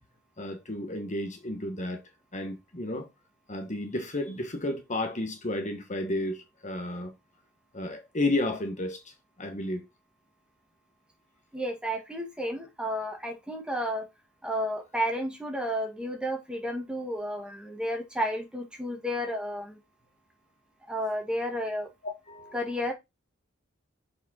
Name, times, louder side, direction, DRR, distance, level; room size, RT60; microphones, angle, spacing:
voice 1, 0.4-2.0 2.3-3.1 3.5-7.1 7.7-9.8 22.3-22.6, left 1 dB, 35° left, 1.4 m, -32 dB
voice 2, 11.5-14.1 14.4-19.8 20.8-21.9 22.5-22.9, equal, 5° right, 1.8 m, -32 dB
7.1 x 5.1 x 4.2 m
head